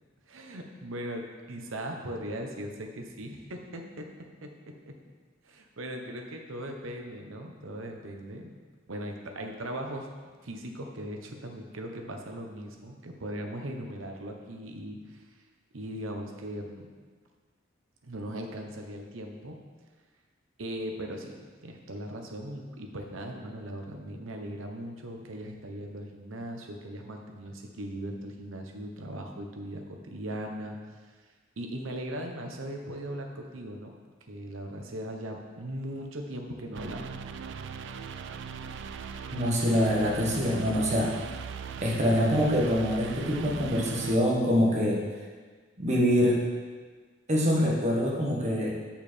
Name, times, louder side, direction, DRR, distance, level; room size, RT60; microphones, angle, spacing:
voice 1, 0.3-4.1 4.4-4.9 5.4-8.5 8.9-10.1 10.4-15.2 15.7-16.9 18.0-19.6 20.6-30.8 31.6-34.0 34.3-37.0, right 1 dB, 85° right, 3 dB, 0.9 m, -39 dB
sound 1, 36.7-44.2, right 6 dB, 65° right, 0.4 m, -39 dB
voice 2, 39.3-41.1 41.8-45.0 45.8-46.4 47.3-48.7, equal, 35° right, -3 dB, 1.4 m, -25 dB
6.7 x 5.7 x 4.3 m, 1.5 s
head